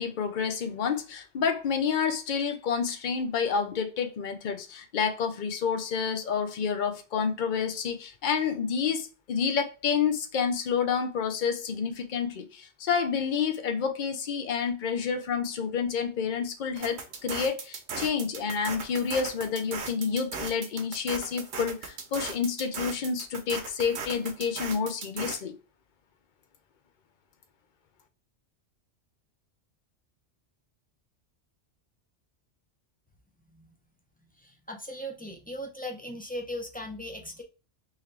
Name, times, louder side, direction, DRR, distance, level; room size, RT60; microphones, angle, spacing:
voice 1, 0.0-25.5, left 6 dB, 50° left, 0.7 m, -29 dB
sound 1, 16.8-25.4, right 5 dB, 70° right, 1.0 m, -38 dB
voice 2, 34.4-37.4, equal, 15° left, 0.3 m, -38 dB
3.7 x 3.0 x 3.3 m
omnidirectional pair, 1.2 m